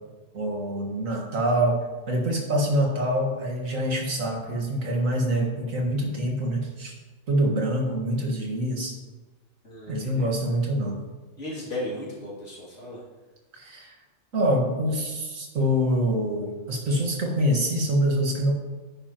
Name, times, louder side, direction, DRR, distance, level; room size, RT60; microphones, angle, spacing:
voice 1, 0.3-1.8 2.1-6.9 7.3-8.9 9.9-11.0 13.5-13.9 14.3-18.5, equal, 90° right, 0 dB, 2.1 m, -25 dB
voice 2, 9.6-10.3 11.4-13.0, left 1 dB, 65° left, -6 dB, 3.2 m, -35 dB
9.8 x 9.8 x 3.0 m, 1.2 s
omnidirectional pair, 1.3 m